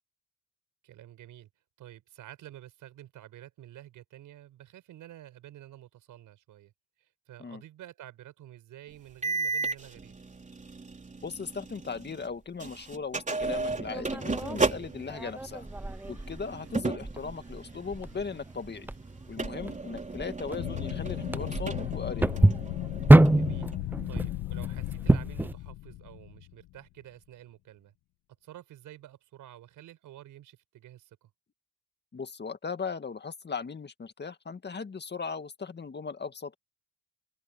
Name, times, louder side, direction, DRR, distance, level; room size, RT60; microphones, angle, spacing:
voice 1, 0.8-1.5 1.8-6.7 7.0-10.1 16.5-16.7 19.6-19.8 23.3-23.7 24.1-27.9 28.4-31.3, right 13 dB, 75° right, 6.4 m, -50 dB
sound 1, 9.2-12.3 12.6-23.8, right 3 dB, 25° right, 3.6 m, -35 dB
voice 2, 11.2-15.7 16.1-18.9 19.3-22.3 32.1-36.6, left 5 dB, 35° left, 2.1 m, -38 dB
sound 2, 13.4-25.5, right 1 dB, 5° right, 0.6 m, -27 dB
sound 3, 20.6-26.7, left 17 dB, 85° left, 1.2 m, -36 dB
open air
cardioid pair, 80°, 31 cm